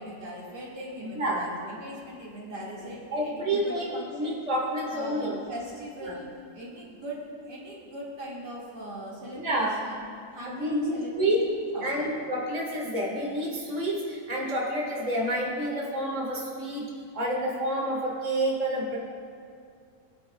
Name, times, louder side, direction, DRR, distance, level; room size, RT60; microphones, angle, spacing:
voice 1, 0.0-4.4 4.9-6.3 6.5-12.1, equal, 85° right, -6 dB, 2.8 m, -40 dB
voice 2, 1.0-1.4 3.1-5.3 6.0-6.1 9.3-9.7 10.5-11.4 11.8-16.8 17.1-19.0, right 1 dB, 25° right, -3 dB, 1.8 m, -29 dB
20.0 x 9.3 x 2.4 m, 2.3 s
omnidirectional pair, 1.8 m